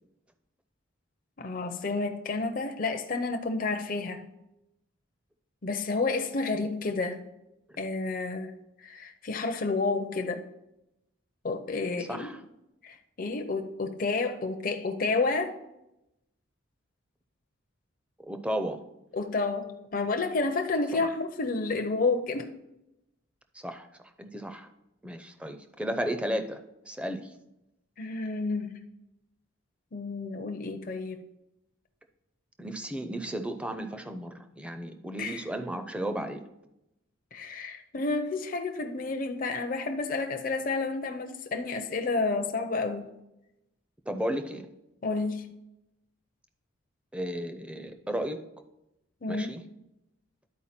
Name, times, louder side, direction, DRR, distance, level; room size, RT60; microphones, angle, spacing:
voice 1, 1.4-4.3 5.6-7.2 7.8-10.5 11.4-12.3 12.8-15.6 19.1-22.5 28.0-28.8 29.9-31.2 35.2-35.4 37.3-43.1 45.0-45.5 49.2-49.5, left 3 dB, 45° left, 0.5 m, -30 dB
voice 2, 12.0-12.4 18.2-18.8 23.6-23.9 24.2-24.7 25.0-27.3 32.6-36.4 44.1-44.7 47.1-48.4 49.3-49.6, equal, 5° right, 0.5 m, -34 dB
11.5 x 4.5 x 4.3 m
head